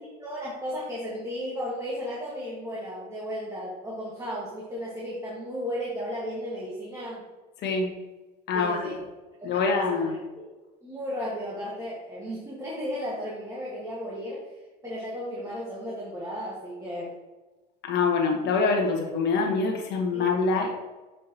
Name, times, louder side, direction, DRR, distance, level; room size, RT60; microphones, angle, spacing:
voice 1, 0.2-7.2 8.5-9.0 9.4-10.1 10.4-10.5 10.8-17.2 20.1-20.3 20.5-20.7, equal, 15° right, -6 dB, 1.7 m, -34 dB
voice 2, 7.6-7.9 8.5-8.9 9.4-10.2 17.8-20.7, left 4 dB, 55° left, 1 dB, 1.5 m, -25 dB
6.8 x 5.1 x 3.0 m, 1.2 s
hypercardioid pair, 85°, 21 cm